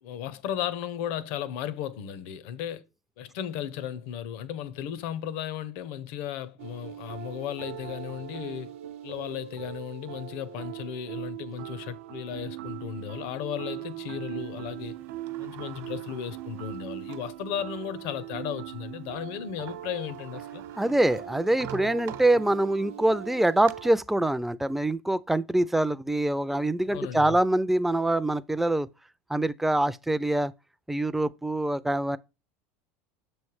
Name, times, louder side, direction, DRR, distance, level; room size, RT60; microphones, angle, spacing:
voice 1, 0.0-2.8 3.2-8.7 9.0-15.0 15.4-20.6 26.9-27.4, left 10 dB, 70° left, 0.6 m, -35 dB
sound 1, 6.6-23.9, right 12 dB, 85° right, 0.5 m, -40 dB
Sliding door, 14.8-17.4 18.0-18.1 19.4-19.5 19.7-22.8 23.3-23.7, right 9 dB, 55° right, 0.9 m, -47 dB
voice 2, 20.8-28.9 29.3-30.5 30.9-32.2, right 1 dB, 5° right, 0.3 m, -25 dB
6.8 x 3.2 x 4.7 m
supercardioid pair, 110°, 7 cm